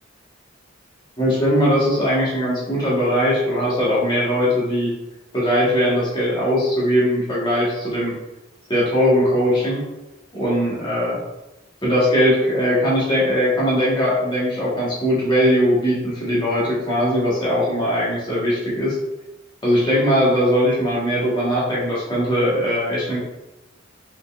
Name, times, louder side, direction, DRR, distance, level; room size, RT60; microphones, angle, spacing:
voice 1, 1.2-4.9 5.3-8.1 8.7-9.8 10.3-11.2 11.8-19.0 19.6-23.2, equal, 25° left, -7 dB, 1.4 m, -20 dB
4.9 x 3.9 x 2.4 m, 1.0 s
head